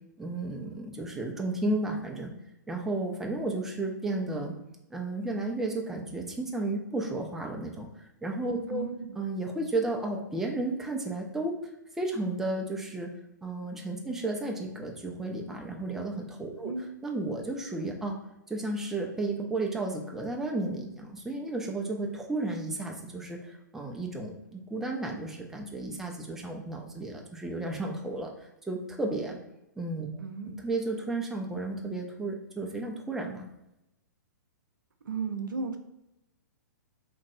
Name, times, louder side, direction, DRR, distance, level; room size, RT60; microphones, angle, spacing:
voice 1, 0.2-2.3 2.7-4.5 4.9-8.9 9.1-11.5 12.0-13.1 13.4-16.7 17.0-18.2 18.5-29.4 29.8-33.5, right 2 dB, 5° right, 0 dB, 0.3 m, -33 dB
voice 2, 8.7-9.2 16.6-16.9 30.2-30.6 35.0-35.8, right 5 dB, 85° right, 6 dB, 0.4 m, -34 dB
2.9 x 2.6 x 2.5 m, 0.88 s
hypercardioid pair, 125°, 10 cm